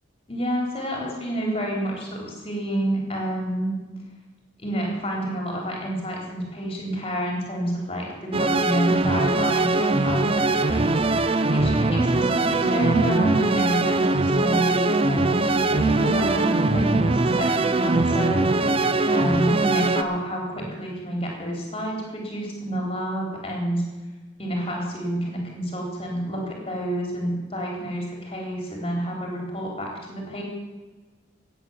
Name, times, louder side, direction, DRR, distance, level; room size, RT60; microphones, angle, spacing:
voice 1, 0.3-3.8 4.6-11.0 11.5-17.5 17.7-18.7 19.1-23.8 24.4-30.4, right 1 dB, 30° left, -1 dB, 3.8 m, -28 dB
sound 1, 8.3-20.0, right 2 dB, 30° right, 0.6 m, -21 dB
15.5 x 9.3 x 7.1 m, 1.2 s
head